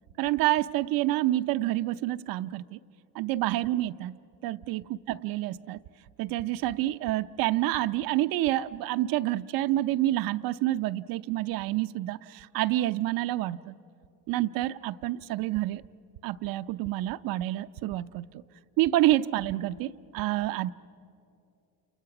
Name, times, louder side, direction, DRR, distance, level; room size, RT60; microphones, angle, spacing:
voice 1, 0.2-2.8 3.1-4.2 4.4-5.8 6.2-13.7 14.3-15.8 16.2-18.3 18.8-20.7, right 15 dB, 80° right, 12 dB, 0.6 m, -28 dB
29.0 x 28.5 x 5.9 m, 2.7 s
cardioid pair, 115°, 34 cm